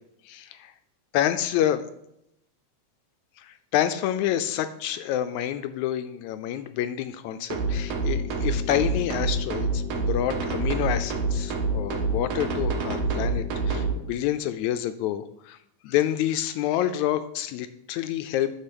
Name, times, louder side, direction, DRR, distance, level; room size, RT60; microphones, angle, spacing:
voice 1, 0.3-0.7 1.1-1.9 3.4-15.6 15.8-18.5, left 11 dB, 80° left, 11 dB, 1.8 m, -28 dB
sound 1, 7.5-13.9, right 3 dB, 80° right, 2.7 m, -27 dB
9.9 x 6.6 x 5.2 m, 0.79 s
omnidirectional pair, 3.5 m